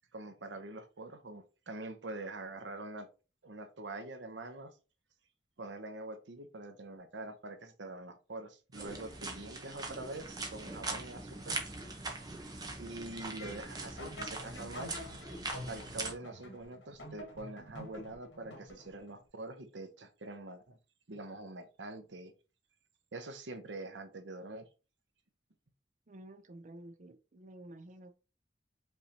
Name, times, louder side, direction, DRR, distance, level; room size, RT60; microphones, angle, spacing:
voice 1, 0.1-3.1 3.4-4.8 5.6-11.7 12.8-14.9 15.7-20.8 21.1-22.3 23.1-24.7, right 2 dB, 90° right, 0.8 m, -45 dB
sound 1, 8.7-16.1, right 2 dB, 20° right, 0.9 m, -42 dB
sound 2, 13.2-19.1, left 1 dB, 85° left, 1.5 m, -48 dB
voice 2, 26.1-28.1, right 1 dB, 45° right, 0.6 m, -51 dB
5.3 x 3.3 x 2.9 m
head